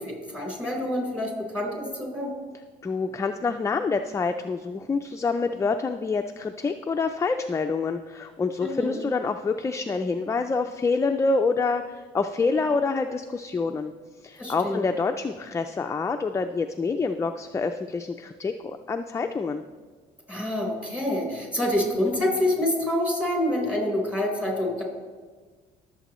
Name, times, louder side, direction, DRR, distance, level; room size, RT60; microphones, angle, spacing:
voice 1, 0.0-2.3 8.6-9.0 14.4-14.8 20.3-24.8, left 1 dB, 5° right, 0 dB, 3.9 m, -27 dB
voice 2, 2.8-13.9 14.2-19.6, left 4 dB, 15° left, 6 dB, 0.4 m, -27 dB
21.5 x 7.5 x 3.1 m, 1.5 s
cardioid pair, 110°, 17 cm